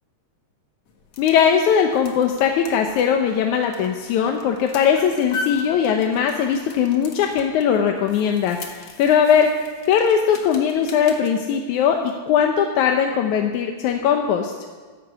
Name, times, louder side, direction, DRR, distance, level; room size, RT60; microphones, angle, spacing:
sound 1, 0.9-11.3, left 4 dB, 55° left, 2.4 m, -39 dB
voice 1, 1.2-9.5 9.9-14.5, left 7 dB, 85° left, 3 dB, 2.3 m, -20 dB
12.5 x 12.0 x 8.0 m, 1.5 s
omnidirectional pair, 3.3 m